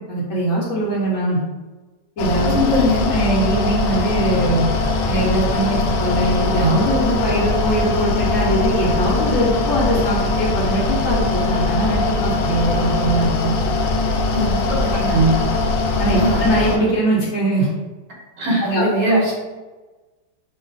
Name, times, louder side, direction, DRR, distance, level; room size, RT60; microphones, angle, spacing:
voice 1, 0.1-1.4 2.2-2.5 3.1-4.7 5.1-13.5 14.7-15.3 16.0-17.7 18.7-19.2, right 1 dB, 50° left, -7 dB, 1.1 m, -21 dB
Mechanical fan, 2.2-16.8, left 3 dB, 85° left, 1.3 m, -21 dB
voice 2, 2.5-3.1 14.3-15.2 16.2-16.4 18.4-19.3, equal, 65° right, -2 dB, 1.8 m, -21 dB
5.6 x 2.4 x 3.9 m, 1.2 s
omnidirectional pair, 2.0 m